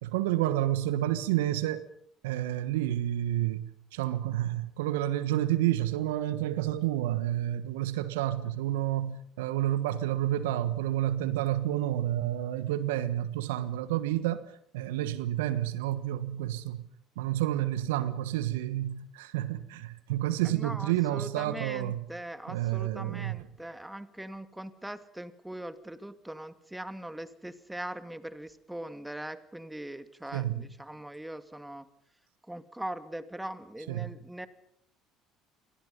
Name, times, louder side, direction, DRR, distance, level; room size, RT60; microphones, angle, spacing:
voice 1, 0.0-1.9 2.2-3.6 3.9-14.5 14.7-16.8 17.2-22.0 22.5-23.5 30.3-30.6 33.9-34.1, right 13 dB, 75° right, 1.4 m, -30 dB
voice 2, 20.4-31.9 32.5-34.5, right 1 dB, 5° right, 2.4 m, -41 dB
29.0 x 24.5 x 5.5 m
hypercardioid pair, 60°, 0 cm